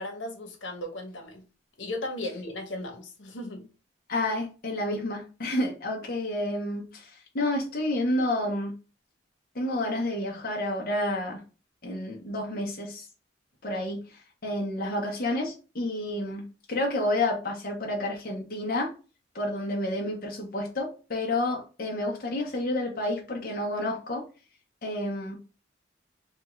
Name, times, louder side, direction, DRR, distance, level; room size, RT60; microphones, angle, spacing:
voice 1, 0.0-1.4 1.8-3.7, left 1 dB, 90° left, 1.0 m, -36 dB
voice 2, 4.1-8.7 9.5-11.4 11.8-13.0 13.6-14.0 14.4-16.4 16.7-18.9 19.3-24.2 24.8-25.4, left 1 dB, 50° left, 0.8 m, -30 dB
3.4 x 2.3 x 3.0 m
head